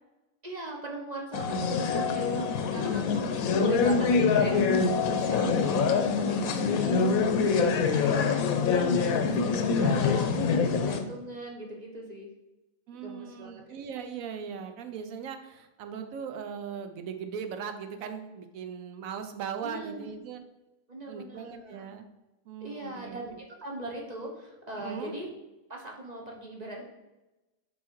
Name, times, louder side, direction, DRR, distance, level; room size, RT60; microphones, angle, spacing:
voice 1, 0.4-8.3 8.7-12.3 12.9-13.6 19.6-20.1 20.9-21.8 22.6-25.3 25.7-26.8, right 1 dB, 35° right, 0 dB, 0.8 m, -40 dB
sound 1, 1.3-11.0, left 5 dB, 80° left, 1.1 m, -25 dB
voice 2, 7.6-8.0 12.9-20.4 21.1-22.1 22.5-23.2 24.8-25.1, right 7 dB, 75° right, 7 dB, 1.0 m, -39 dB
6.3 x 3.6 x 4.5 m, 1.0 s
omnidirectional pair, 1.5 m